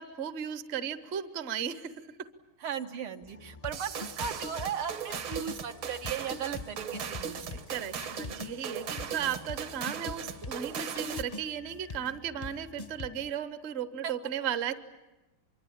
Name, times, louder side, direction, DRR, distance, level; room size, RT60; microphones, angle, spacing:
voice 1, 0.0-1.9 7.7-14.7, right 9 dB, 45° right, 13 dB, 0.9 m, -35 dB
voice 2, 2.6-7.8 9.0-9.4 14.0-14.1, right 8 dB, 80° right, 6 dB, 2.1 m, -37 dB
sound 1, 3.2-13.3, left 3 dB, 35° left, 0.6 m, -45 dB
sound 2, 3.7-11.4, right 6 dB, 65° right, 2.0 m, -38 dB
25.0 x 23.5 x 8.7 m, 1.1 s
omnidirectional pair, 2.3 m